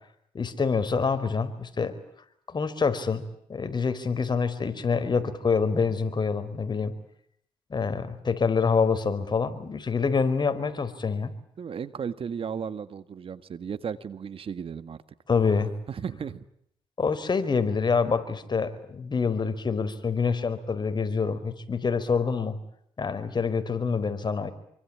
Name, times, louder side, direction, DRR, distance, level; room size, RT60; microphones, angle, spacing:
voice 1, 0.3-2.0 2.5-6.9 7.7-11.3 15.3-15.7 17.0-22.6 23.0-24.5, left 5 dB, 45° left, 10 dB, 4.7 m, -26 dB
voice 2, 11.6-15.0 15.9-16.5, right 7 dB, 60° right, 14 dB, 1.8 m, -35 dB
28.0 x 24.5 x 8.8 m, 0.71 s
cardioid pair, 65°, 11 cm